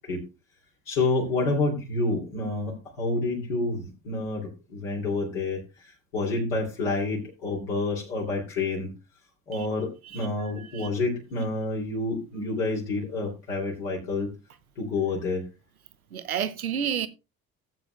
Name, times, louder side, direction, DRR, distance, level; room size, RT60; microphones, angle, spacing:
voice 1, 0.9-8.9 9.5-14.3 14.8-15.4, left 3 dB, 65° left, 2.8 m, -28 dB
voice 2, 10.0-10.9 16.1-17.1, right 8 dB, 80° right, 0.7 m, -31 dB
16.5 x 8.1 x 2.2 m
figure-of-eight pair, 50°, 43 cm